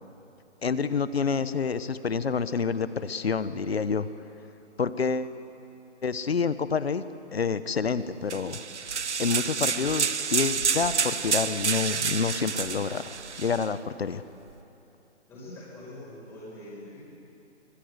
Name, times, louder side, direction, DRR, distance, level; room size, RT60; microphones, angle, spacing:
voice 1, 0.6-4.1 4.8-5.3 6.0-7.0 7.3-8.6 9.2-13.1 13.4-14.2, left 5 dB, 60° left, 13 dB, 1.1 m, -28 dB
sound 1, 8.3-13.7, right 6 dB, 75° right, 1.1 m, -29 dB
voice 2, 15.3-17.0, left 1 dB, 5° left, -7 dB, 4.9 m, -43 dB
24.5 x 19.5 x 8.0 m, 2.8 s
hypercardioid pair, 170°, 35 cm